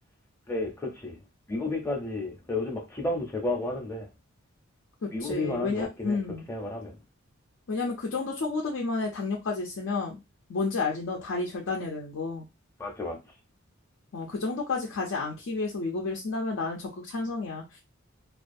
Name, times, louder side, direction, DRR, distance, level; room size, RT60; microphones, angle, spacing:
voice 1, 0.5-1.2 1.5-4.1 5.1-6.2 6.5-6.9 12.8-13.2, left 2 dB, 10° left, 0.6 m, -32 dB
voice 2, 5.2-6.4 7.7-10.2 10.5-12.4 14.1-17.8, left 3 dB, 70° left, 0.5 m, -31 dB
2.4 x 2.3 x 2.5 m
head